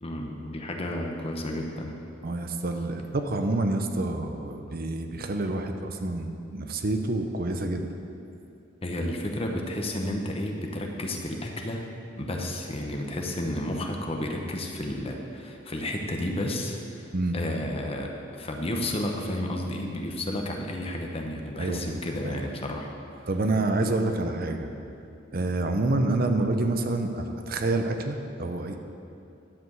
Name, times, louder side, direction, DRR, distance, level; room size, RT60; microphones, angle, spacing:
voice 1, 0.0-2.0 8.8-11.9 12.2-22.9 23.2-23.3, left 1 dB, 30° left, 1 dB, 1.0 m, -32 dB
voice 2, 2.2-7.9 17.1-17.4 21.6-22.4 23.3-24.7 25.3-28.8, right 2 dB, 50° right, 5 dB, 0.7 m, -28 dB
11.0 x 5.1 x 7.6 m, 2.6 s
head